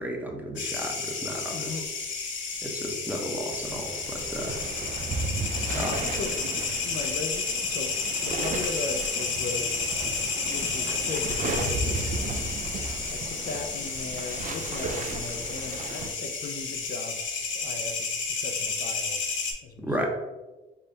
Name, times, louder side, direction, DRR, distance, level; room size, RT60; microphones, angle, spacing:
voice 1, 0.0-1.8 2.6-4.6 5.7-6.0 19.8-20.1, equal, 10° right, 1 dB, 0.7 m, -33 dB
sound 1, 0.6-19.5, left 4 dB, 70° left, 0.8 m, -31 dB
voice 2, 1.5-1.9 5.7-6.4 6.8-9.7 10.4-19.2 19.6-20.1, left 4 dB, 50° left, 5 dB, 0.4 m, -38 dB
sound 2, 3.5-16.1, right 3 dB, 40° right, 0.4 m, -35 dB
3.6 x 2.1 x 3.9 m, 1.1 s
cardioid pair, 90°, 20 cm